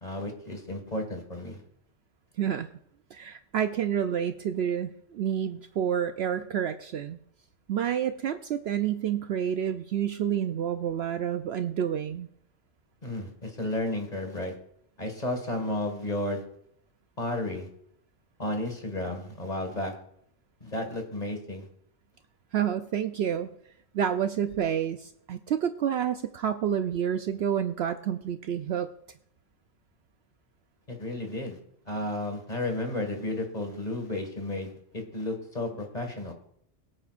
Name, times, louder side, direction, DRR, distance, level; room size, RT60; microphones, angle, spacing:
voice 1, 0.0-1.6 13.0-14.5 15.0-16.4 17.2-17.7 18.4-19.9 20.6-21.7 30.9-31.6 31.9-36.3, left 1 dB, 35° left, 4 dB, 1.9 m, -33 dB
voice 2, 2.4-2.7 3.1-7.2 7.7-12.3 22.5-23.5 23.9-28.9, right 9 dB, 65° right, 9 dB, 0.7 m, -29 dB
22.0 x 8.8 x 2.5 m, 0.71 s
omnidirectional pair, 1.3 m